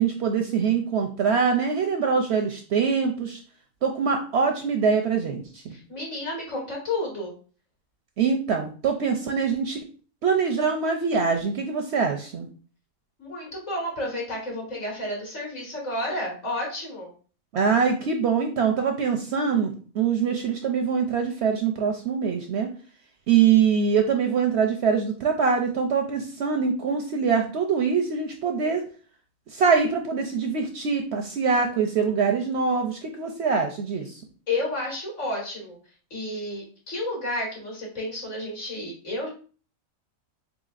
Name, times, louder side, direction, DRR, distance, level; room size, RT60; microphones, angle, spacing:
voice 1, 0.0-3.4 3.8-5.6 8.2-9.8 10.2-12.5 17.5-22.7 23.3-28.8 29.5-34.2, right 6 dB, 65° right, 4 dB, 0.7 m, -24 dB
voice 2, 5.7-7.3 13.2-17.1 34.5-35.8 36.1-39.3, left 1 dB, 55° left, -2 dB, 2.0 m, -31 dB
4.0 x 3.9 x 2.4 m, 0.39 s
omnidirectional pair, 1.4 m